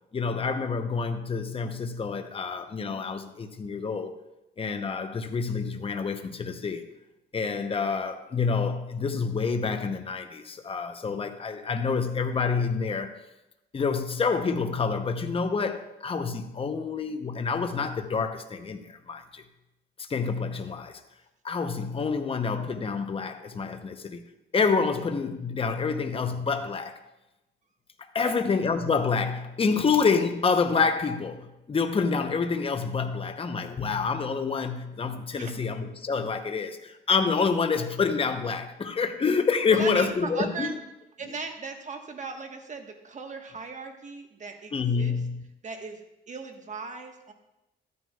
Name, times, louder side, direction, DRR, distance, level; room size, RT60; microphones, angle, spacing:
voice 1, 0.1-4.1 4.6-6.8 7.3-13.2 13.7-19.4 20.0-21.0 21.4-24.2 24.5-27.0 28.0-40.7 44.7-45.4, left 5 dB, 30° left, 7 dB, 0.8 m, -27 dB
voice 2, 39.7-40.8 41.2-45.2 45.6-47.3, right 4 dB, 40° right, 4 dB, 1.3 m, -38 dB
13.5 x 9.4 x 2.3 m, 0.94 s
cardioid pair, 90°, 20 cm